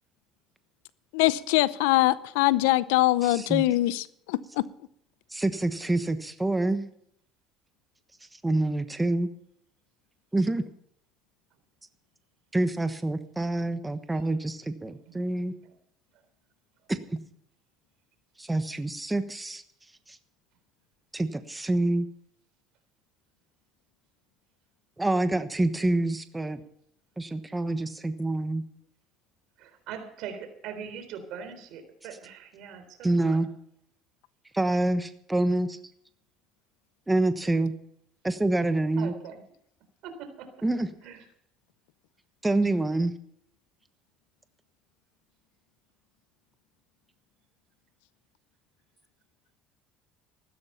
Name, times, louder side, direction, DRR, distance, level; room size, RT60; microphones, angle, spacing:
voice 1, 1.1-4.6, left 17 dB, 85° left, 18 dB, 0.6 m, -23 dB
voice 2, 3.2-3.6 5.3-6.9 8.4-9.3 10.3-10.6 12.5-15.5 16.9-17.2 18.4-19.6 20.1-20.2 21.1-22.1 25.0-26.6 27.2-28.6 33.0-33.5 34.5-35.8 37.1-37.7 38.2-39.1 40.6-40.9 42.4-43.1, right 2 dB, 10° right, 9 dB, 1.2 m, -27 dB
voice 3, 14.9-15.3 29.6-33.4 39.0-39.4 40.0-40.5 41.0-41.2, right 7 dB, 70° right, 8 dB, 3.8 m, -41 dB
15.0 x 13.0 x 5.7 m, 0.70 s
supercardioid pair, 90°, 0 cm